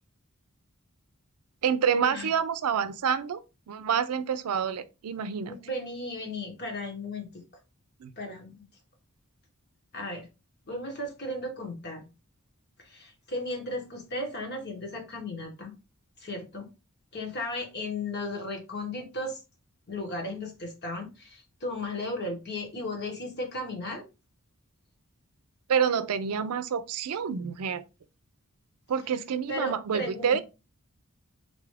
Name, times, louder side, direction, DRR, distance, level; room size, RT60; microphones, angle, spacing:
voice 1, 1.6-3.4 3.7-5.6 8.0-8.1 25.7-27.8 28.9-30.4, right 7 dB, 85° right, 0.4 m, -28 dB
voice 2, 5.4-7.4 8.2-8.6 9.9-10.3 10.7-12.1 12.8-15.7 16.2-16.7 17.1-19.4 19.9-24.0 29.5-30.4, left 1 dB, 50° left, 1.3 m, -35 dB
3.9 x 2.5 x 3.2 m
head